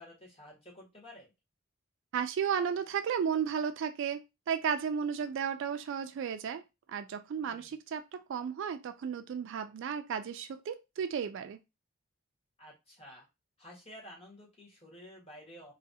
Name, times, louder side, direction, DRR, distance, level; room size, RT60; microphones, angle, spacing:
voice 1, 0.0-1.3 7.4-7.8 12.6-13.3 13.6-15.7, equal, 30° left, 1.4 m, -52 dB
voice 2, 2.1-4.2 4.5-6.6 6.9-11.6, right 7 dB, 60° right, 0.3 m, -34 dB
3.0 x 2.4 x 2.7 m
head